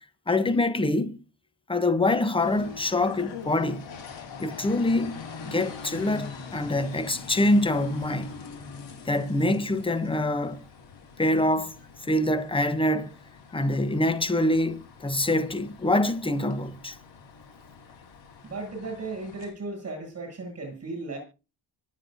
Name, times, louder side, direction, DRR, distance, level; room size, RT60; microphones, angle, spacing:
voice 1, 0.3-1.2 1.7-3.8 4.4-8.3 9.1-10.6 11.2-11.7 12.0-13.1 13.5-17.0, left 1 dB, 10° left, 0.9 m, -25 dB
sound 1, 2.4-19.5, left 5 dB, 85° left, 3.8 m, -43 dB
voice 2, 18.4-21.2, right 3 dB, 35° right, 7.7 m, -36 dB
25.0 x 8.5 x 2.7 m
wide cardioid pair, 180°, 44 cm